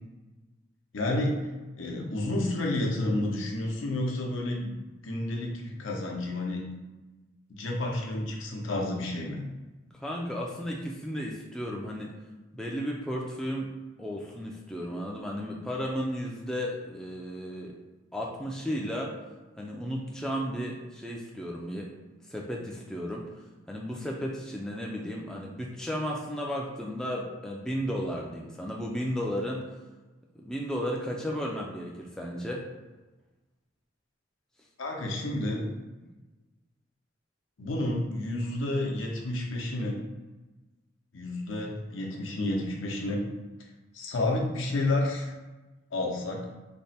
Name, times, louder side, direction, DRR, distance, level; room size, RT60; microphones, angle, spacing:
voice 1, 0.9-1.4 1.8-6.6 7.5-9.4 34.8-35.7 37.6-40.0 41.1-43.2 43.9-45.3 45.9-46.5, left 1 dB, 80° left, -1 dB, 0.7 m, -30 dB
voice 2, 9.9-12.1 12.5-13.7 14.0-17.8 18.1-19.1 19.6-21.9 22.3-23.3 23.7-29.6 30.4-32.6, equal, 5° left, -2 dB, 0.3 m, -34 dB
3.4 x 2.1 x 4.1 m, 1.2 s
head